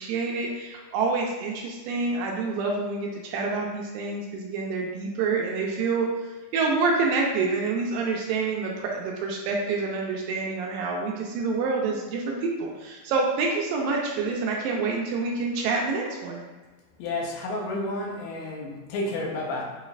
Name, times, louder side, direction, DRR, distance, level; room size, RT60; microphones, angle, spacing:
voice 1, 0.0-6.1 6.5-16.4, right 4 dB, 80° right, -1 dB, 2.1 m, -27 dB
voice 2, 17.0-19.6, left 2 dB, 90° left, 0 dB, 2.6 m, -31 dB
6.5 x 3.0 x 2.4 m, 1.3 s
omnidirectional pair, 4.3 m